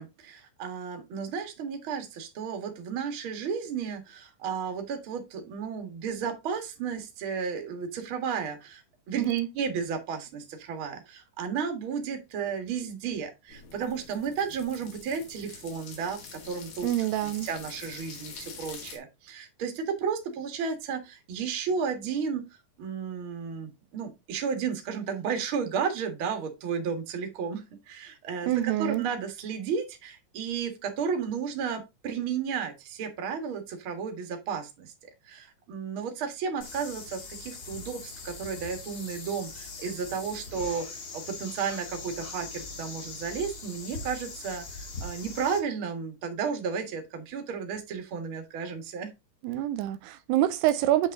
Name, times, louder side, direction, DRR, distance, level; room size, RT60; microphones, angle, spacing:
voice 1, 0.0-22.5 22.8-49.1, right 6 dB, 45° right, 1.9 m, -33 dB
sound 1, 13.5-19.0, left 6 dB, 65° left, 4.0 m, -46 dB
voice 2, 16.8-17.5 28.5-29.0 49.4-51.1, right 14 dB, 85° right, 2.7 m, -26 dB
sound 2, 36.6-45.6, left 3 dB, 50° left, 1.1 m, -41 dB
8.5 x 5.5 x 3.6 m
omnidirectional pair, 4.8 m